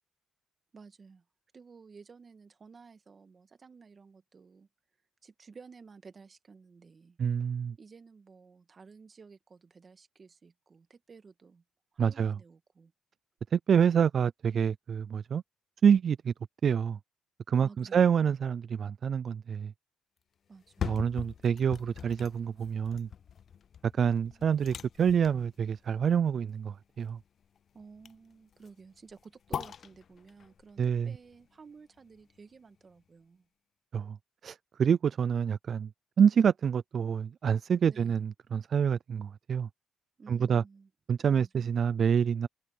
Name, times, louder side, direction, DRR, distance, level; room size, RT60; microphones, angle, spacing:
voice 1, 0.7-1.2 1.5-4.7 5.2-7.2 7.8-11.6 11.9-12.9 17.6-18.3 20.5-20.9 24.0-24.6 27.7-33.5 37.9-38.2 40.2-40.9 41.3-41.7, right 5 dB, 40° right, 1.9 m, -53 dB
voice 2, 7.2-7.8 12.0-12.4 13.5-15.4 15.8-16.3 16.6-17.0 17.5-19.7 20.8-23.1 24.0-27.2 30.8-31.1 33.9-34.2 34.4-35.9 36.2-39.7 40.3-40.6 41.1-42.5, right 7 dB, 55° right, 0.4 m, -27 dB
sound 1, 20.5-32.6 33.0-33.1, left 8 dB, 55° left, 0.4 m, -43 dB
cardioid pair, 90°, 0 cm